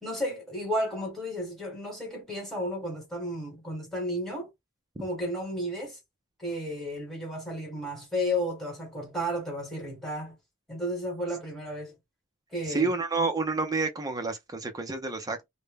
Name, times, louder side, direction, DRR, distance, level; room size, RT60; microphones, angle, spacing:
voice 1, 0.0-4.5 5.0-6.0 6.4-10.3 10.7-12.0 12.5-12.9 13.2-13.3, equal, ahead, 1.1 m, -33 dB
voice 2, 12.6-15.5, right 3 dB, 15° right, 0.4 m, -29 dB
2.1 x 2.0 x 3.3 m
head